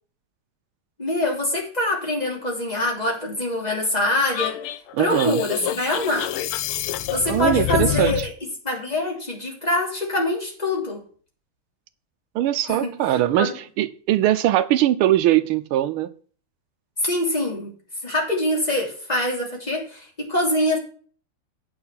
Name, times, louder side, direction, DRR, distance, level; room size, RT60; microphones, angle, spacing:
voice 1, 1.0-4.6 5.0-6.3 7.1-8.3 8.6-11.0 12.7-13.5 17.0-17.7 18.0-20.8, left 1 dB, 20° left, 3.0 m, -24 dB
sound 1, 4.3-8.3, left 12 dB, 80° left, 1.5 m, -27 dB
voice 2, 4.9-5.4 7.3-8.3 12.3-16.1, right 13 dB, 80° right, 1.5 m, -21 dB
9.1 x 6.5 x 5.8 m
omnidirectional pair, 2.4 m